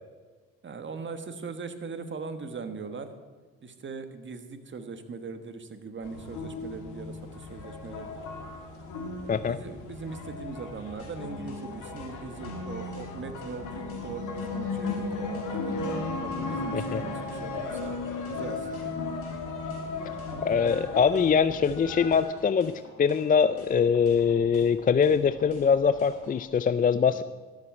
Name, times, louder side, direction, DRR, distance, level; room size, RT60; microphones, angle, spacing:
voice 1, 0.6-3.1 3.6-8.1 9.2-15.8 16.2-17.9 18.2-18.9 27.1-27.2, right 4 dB, 40° right, 8 dB, 1.5 m, -40 dB
sound 1, 6.0-22.2, left 3 dB, 85° left, 2.4 m, -35 dB
sound 2, 11.0-26.4, left 2 dB, 45° left, 4.4 m, -50 dB
voice 2, 20.4-22.7 23.0-27.2, left 6 dB, 30° left, 13 dB, 0.4 m, -23 dB
13.0 x 7.7 x 8.6 m, 1.4 s
cardioid pair, 90°, 30 cm